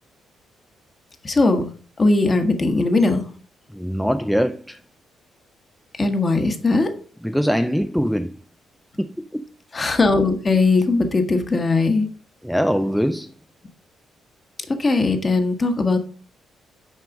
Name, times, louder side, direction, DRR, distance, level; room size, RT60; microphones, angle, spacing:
voice 1, 1.2-1.6 2.0-3.3 6.0-6.9 9.7-12.1 14.7-16.0, left 3 dB, 30° left, 1.4 m, -19 dB
voice 2, 3.7-4.8 7.2-8.4 9.0-9.4 12.4-13.3, equal, ahead, 0.4 m, -22 dB
6.5 x 4.8 x 5.2 m
cardioid pair, 90°, 0 cm